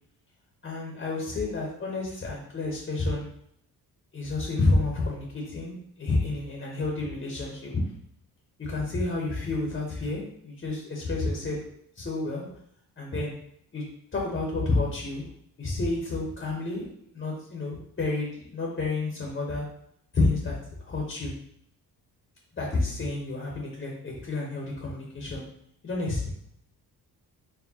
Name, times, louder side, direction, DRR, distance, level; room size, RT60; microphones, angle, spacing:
voice 1, 0.6-3.3 4.1-7.8 8.6-11.6 11.9-12.5 13.0-13.4 13.7-13.8 14.1-15.2 15.6-16.8 17.1-19.7 20.1-20.6 20.8-21.3 22.6-25.4 25.8-26.3, left 2 dB, 30° left, -2 dB, 1.0 m, -29 dB
4.6 x 3.2 x 2.8 m, 0.70 s
cardioid pair, 115°, 37 cm